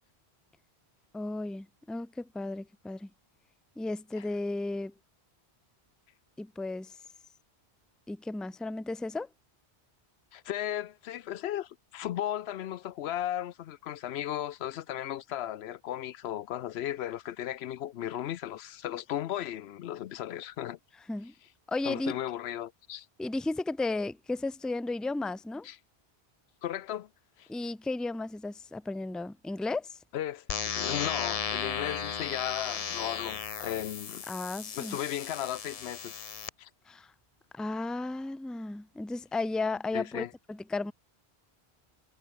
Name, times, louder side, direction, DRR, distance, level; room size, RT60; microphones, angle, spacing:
voice 1, 1.1-3.1 3.8-4.9 6.4-7.0 8.1-9.3 21.1-21.3 21.7-22.2 23.2-25.7 27.5-30.0 34.3-35.0 36.9-37.1 37.5-40.9, left 2 dB, ahead, 0.6 m, -34 dB
voice 2, 10.3-20.8 21.9-23.1 25.6-25.8 26.6-27.1 27.4-27.5 30.1-30.5 30.7-34.2 34.7-36.1 36.6-36.7 39.9-40.3, left 12 dB, 80° left, 0.8 m, -35 dB
sound 1, 30.5-36.5, left 7 dB, 40° left, 0.7 m, -35 dB
omnidirectional pair, 1.1 m